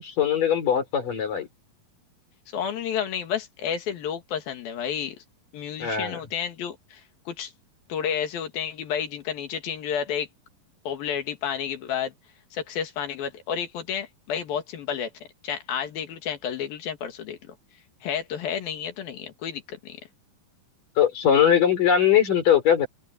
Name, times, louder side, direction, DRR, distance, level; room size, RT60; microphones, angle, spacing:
voice 1, 0.0-1.5 5.8-6.2 21.0-22.9, left 8 dB, 65° left, 6.2 m, -21 dB
voice 2, 2.5-5.2 5.5-7.5 7.9-10.3 10.9-12.1 12.5-15.1 15.4-17.6 18.0-20.0, left 8 dB, 90° left, 3.9 m, -31 dB
omnidirectional pair, 4.1 m